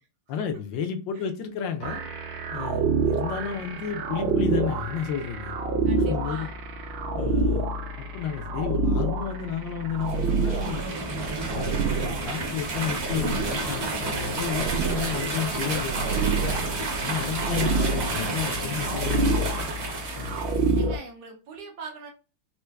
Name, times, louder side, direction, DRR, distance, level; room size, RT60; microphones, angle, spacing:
voice 1, 0.3-2.0 2.5-5.5 6.1-6.5 7.1-7.7 8.0-10.8 11.5-16.6 17.0-19.5 20.2-20.9, left 8 dB, 75° left, 5 dB, 1.2 m, -32 dB
sound 1, 1.8-21.0, right 3 dB, 85° right, 1.4 m, -28 dB
voice 2, 5.8-6.6 20.7-22.1, right 4 dB, 65° right, 2 dB, 1.1 m, -42 dB
sound 2, 10.0-20.8, right 2 dB, 45° right, 0.9 m, -31 dB
4.4 x 2.4 x 2.3 m, 0.33 s
omnidirectional pair, 2.2 m